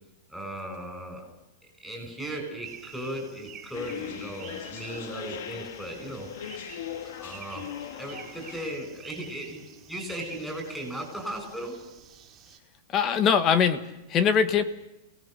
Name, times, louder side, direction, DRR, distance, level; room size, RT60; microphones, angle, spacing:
voice 1, 0.3-1.3 1.8-6.3 7.2-11.8, right 1 dB, ahead, 1 dB, 7.2 m, -37 dB
sound 1, 2.6-12.6, right 8 dB, 20° right, 3.5 m, -49 dB
sound 2, 3.7-8.8, left 9 dB, 65° left, 1.8 m, -40 dB
voice 2, 12.9-14.6, left 7 dB, 30° left, 13 dB, 1.4 m, -22 dB
30.0 x 18.5 x 6.8 m, 0.94 s
supercardioid pair, 150°, 0 cm